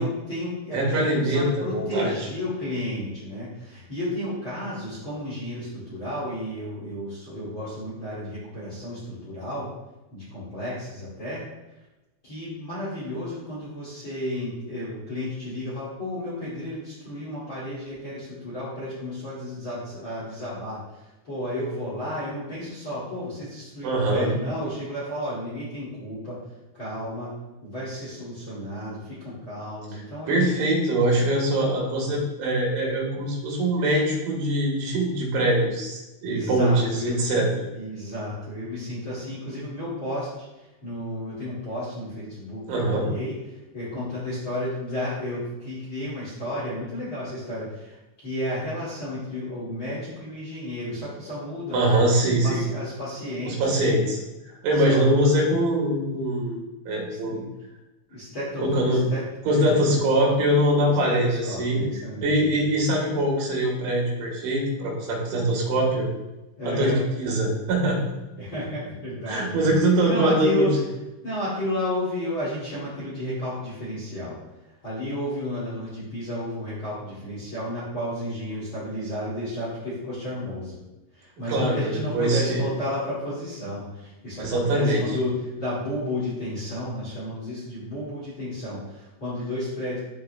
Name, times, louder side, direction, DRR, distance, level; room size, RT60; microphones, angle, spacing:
voice 1, 0.0-9.7 10.1-11.4 12.2-26.4 26.7-27.3 27.6-30.4 36.2-37.2 37.7-48.0 48.2-51.8 52.2-53.8 54.7-55.0 57.1-57.5 58.1-60.1 60.8-62.5 66.6-67.0 68.4-69.7 70.0-70.7 71.2-74.4 74.8-80.8 81.1-90.0, left 1 dB, 35° left, -9 dB, 2.2 m, -32 dB
voice 2, 0.7-2.1 23.8-24.3 30.3-37.5 42.7-43.1 51.7-52.6 53.5-54.2 54.6-56.6 56.9-57.4 58.6-59.0 59.5-61.8 62.2-66.1 66.6-66.9 67.2-68.0 69.3-70.7 81.5-82.6 84.4-85.0, right 1 dB, 75° right, -2 dB, 3.7 m, -23 dB
12.0 x 4.6 x 2.3 m, 1.0 s
omnidirectional pair, 5.6 m